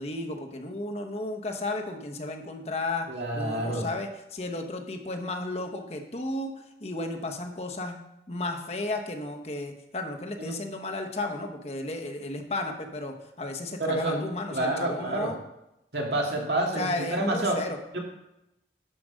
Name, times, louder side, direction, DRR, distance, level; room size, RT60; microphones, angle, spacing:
voice 1, 0.0-3.1 3.3-6.5 6.8-8.0 8.3-15.4 16.8-17.8, left 2 dB, 35° left, 3 dB, 1.0 m, -33 dB
voice 2, 3.1-3.9 10.4-10.5 13.8-14.3 14.5-15.3 15.9-17.6 17.9-18.0, right 2 dB, 70° right, 0 dB, 2.2 m, -28 dB
11.0 x 5.1 x 6.4 m, 0.88 s
head